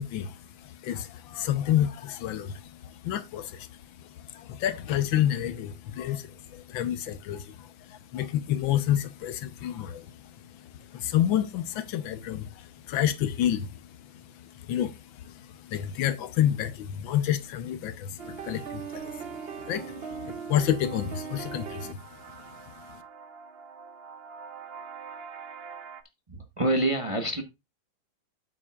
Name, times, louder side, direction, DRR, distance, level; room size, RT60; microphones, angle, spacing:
voice 1, 0.0-22.0 22.3-23.0, left 11 dB, 75° left, 1.5 m, -30 dB
sound 1, 18.2-26.0, right 6 dB, 85° right, 0.5 m, -41 dB
voice 2, 26.3-27.4, right 1 dB, 20° right, 0.9 m, -26 dB
9.0 x 8.7 x 2.4 m
omnidirectional pair, 2.2 m